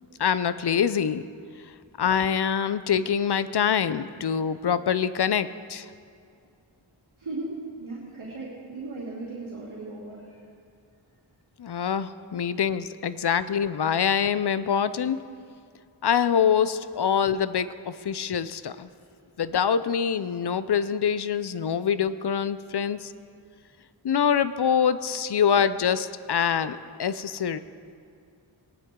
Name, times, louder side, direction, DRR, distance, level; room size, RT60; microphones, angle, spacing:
voice 1, 0.2-1.2 2.0-5.9 11.6-15.2 16.0-18.9 19.4-23.1 24.0-27.6, left 7 dB, 55° left, 14 dB, 0.5 m, -25 dB
voice 2, 7.2-10.5, right 2 dB, 85° right, -7 dB, 2.4 m, -37 dB
18.5 x 10.5 x 3.7 m, 2.3 s
wide cardioid pair, 50°, 47 cm